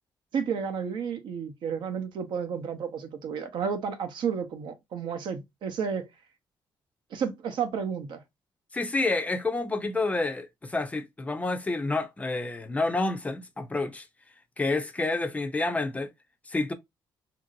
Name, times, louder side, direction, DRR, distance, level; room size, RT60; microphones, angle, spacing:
voice 1, 0.3-6.1 7.1-8.2, right 6 dB, 65° right, 0.7 m, -31 dB
voice 2, 8.7-14.0 14.6-16.1 16.5-16.7, left 2 dB, 15° left, 0.4 m, -29 dB
2.9 x 2.6 x 2.5 m
cardioid pair, 140°, 9 cm